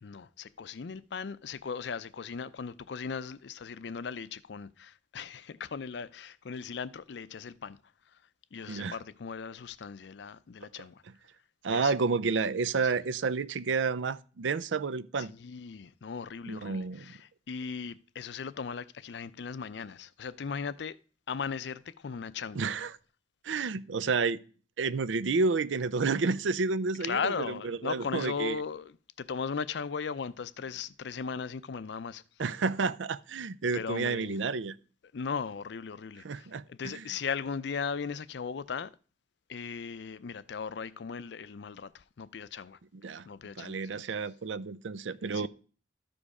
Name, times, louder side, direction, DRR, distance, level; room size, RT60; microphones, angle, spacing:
voice 1, 0.0-7.8 8.1-8.2 8.5-11.0 11.7-11.9 12.8-13.0 15.2-21.0 21.3-22.7 27.0-32.2 33.7-34.4 35.1-38.9 39.5-42.8 43.3-44.0 45.3-45.5, left 6 dB, 65° left, 0.5 m, -38 dB
voice 2, 11.6-15.3 16.5-17.1 22.5-22.9 23.4-24.4 24.8-28.6 32.4-34.8 36.2-36.9 43.0-43.3 43.6-45.5, right 4 dB, 90° right, 0.5 m, -30 dB
13.0 x 5.2 x 4.8 m
head